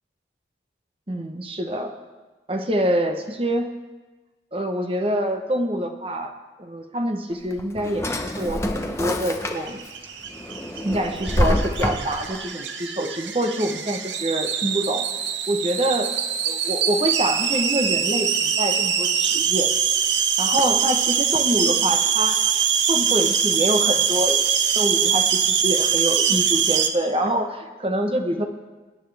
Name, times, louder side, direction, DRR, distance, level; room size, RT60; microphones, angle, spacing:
voice 1, 1.1-1.9 2.5-3.7 4.5-6.3 6.6-9.8 10.8-15.1 15.5-16.1 16.5-19.7 20.4-22.4 22.9-28.5, right 1 dB, 30° right, 5 dB, 1.0 m, -25 dB
Drawer open or close, 7.3-9.9 10.3-12.4, left 1 dB, 15° left, 0.9 m, -26 dB
sound 1, 9.6-26.9, right 7 dB, 75° right, 0.8 m, -23 dB
24.0 x 10.0 x 3.5 m, 1.2 s
head